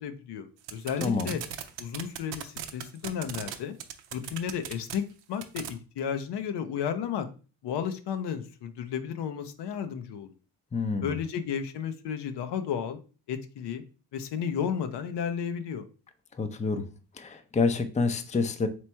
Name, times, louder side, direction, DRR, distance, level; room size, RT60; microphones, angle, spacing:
voice 1, 0.0-1.4 1.8-3.7 4.1-5.0 5.3-7.3 7.6-10.3 11.0-13.0 13.3-13.8 14.1-15.9, left 8 dB, 65° left, 9 dB, 0.7 m, -33 dB
sound 1, 0.6-3.5 3.8-4.9 5.4-5.7, right 12 dB, 85° right, 0.6 m, -36 dB
voice 2, 1.0-1.4 10.7-11.2 16.4-16.8 17.1-18.7, left 4 dB, 15° left, 9 dB, 0.5 m, -28 dB
3.3 x 3.1 x 4.3 m, 0.36 s
supercardioid pair, 65°, 43 cm